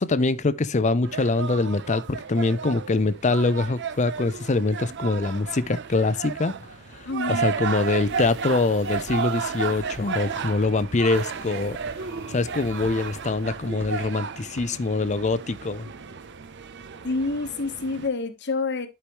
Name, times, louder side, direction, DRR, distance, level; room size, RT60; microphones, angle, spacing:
voice 1, 0.0-15.9, left 3 dB, 35° left, 0.5 m, -24 dB
sound 1, 1.0-18.1, right 6 dB, 55° right, 0.6 m, -33 dB
voice 2, 7.1-7.6 17.0-18.9, left 3 dB, 55° left, 1.1 m, -28 dB
sound 2, 7.7-14.0 14.4-14.6 14.9-15.0, right 2 dB, 85° right, 2.1 m, -46 dB
11.5 x 4.8 x 3.0 m
head